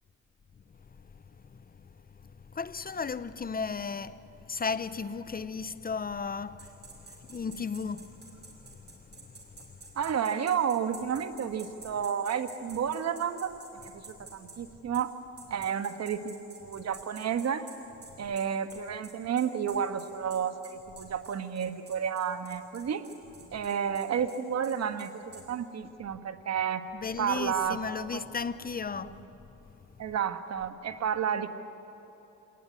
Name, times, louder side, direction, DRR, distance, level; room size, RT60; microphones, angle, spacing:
voice 1, 1.0-9.8 26.9-29.2 29.6-29.7, left 5 dB, 30° left, 0.8 m, -36 dB
sound 1, 6.6-14.6 14.9-15.1 15.4-25.4, right 3 dB, 35° right, 6.4 m, -49 dB
voice 2, 9.9-13.5 13.8-15.1 15.5-17.7 18.2-23.1 23.5-25.1 25.5-26.8 27.2-27.8 28.1-28.2 29.0-29.2 30.0-31.5, right 8 dB, 60° right, 1.5 m, -31 dB
27.0 x 19.5 x 9.8 m
cardioid pair, 90°, 30 cm